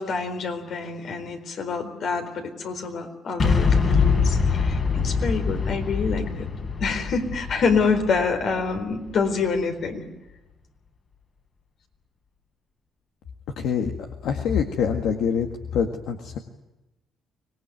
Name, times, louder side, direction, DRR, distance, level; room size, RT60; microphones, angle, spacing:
voice 1, 0.0-6.2 6.8-10.0, left 4 dB, 65° left, 6 dB, 4.1 m, -26 dB
Boom, 3.4-9.3, left 5 dB, 50° left, 4.5 m, -24 dB
voice 2, 13.6-13.9 14.2-15.5 15.7-16.4, left 7 dB, 85° left, 4 dB, 1.9 m, -24 dB
25.0 x 20.0 x 9.3 m, 0.98 s
cardioid pair, 90°, 0 cm